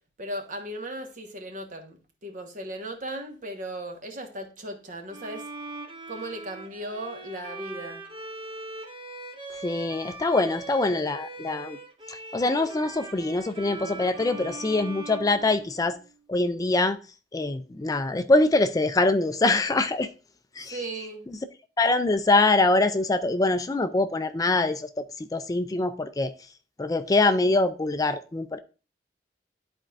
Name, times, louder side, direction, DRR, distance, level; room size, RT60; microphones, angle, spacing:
voice 1, 0.2-5.5 6.1-8.1 20.6-21.3, right 1 dB, 50° right, 1.3 m, -37 dB
Bowed string instrument, 5.1-16.1, right 2 dB, 30° right, 0.9 m, -41 dB
voice 2, 9.6-11.8 12.1-16.0 16.3-17.0 17.3-20.1 20.6-20.8 21.8-26.3 26.8-28.6, left 2 dB, 20° left, 0.4 m, -24 dB
11.5 x 4.3 x 2.5 m
head